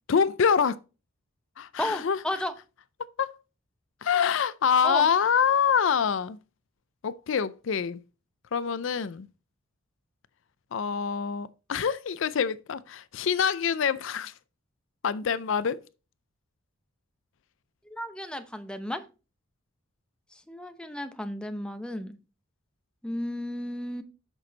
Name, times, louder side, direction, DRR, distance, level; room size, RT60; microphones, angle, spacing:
voice 1, 0.1-0.8 1.6-2.2 3.2-3.3 4.0-6.4 7.0-8.0 8.5-9.3 10.7-14.3 15.0-15.8, left 7 dB, 60° left, 0.4 m, -25 dB
voice 2, 1.8-2.5 4.8-5.1 17.9-19.0 20.3-22.2 23.0-24.0, left 1 dB, 5° left, 0.7 m, -33 dB
7.9 x 6.1 x 3.9 m
head